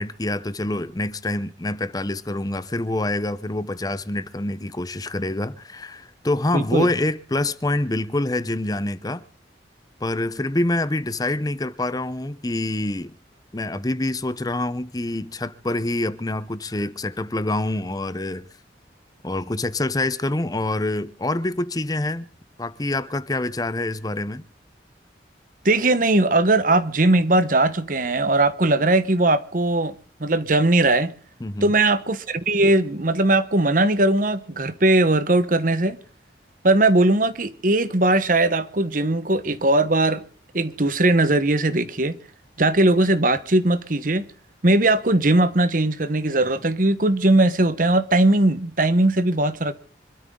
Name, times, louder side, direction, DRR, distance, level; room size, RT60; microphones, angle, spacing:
voice 1, 0.0-9.2 10.0-13.1 13.5-18.5 19.2-22.3 22.6-24.4 31.4-31.6, left 2 dB, 20° left, 0.7 m, -26 dB
voice 2, 6.5-6.9 25.6-29.9 30.2-31.1 31.6-36.0 36.6-40.2 40.5-42.2 42.6-44.2 44.6-49.7, right 2 dB, 50° right, 1.2 m, -19 dB
26.0 x 13.0 x 3.8 m
head